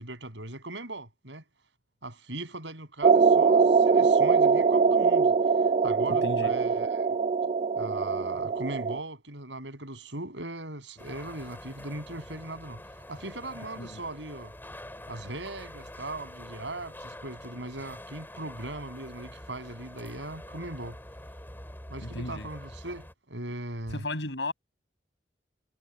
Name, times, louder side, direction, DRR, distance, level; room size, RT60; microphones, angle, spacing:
voice 1, 0.0-1.4 2.0-5.3 5.8-7.1 7.8-12.8 13.1-14.5 15.1-21.0 21.9-24.0, right 2 dB, 85° right, 6.9 m, -39 dB
sound 1, 3.0-9.0, right 5 dB, 35° right, 0.4 m, -22 dB
voice 2, 6.1-6.5 13.8-14.0 22.0-22.5 23.9-24.5, left 2 dB, 75° left, 7.2 m, -34 dB
sound 2, 11.0-23.1, left 1 dB, 10° left, 5.5 m, -45 dB
head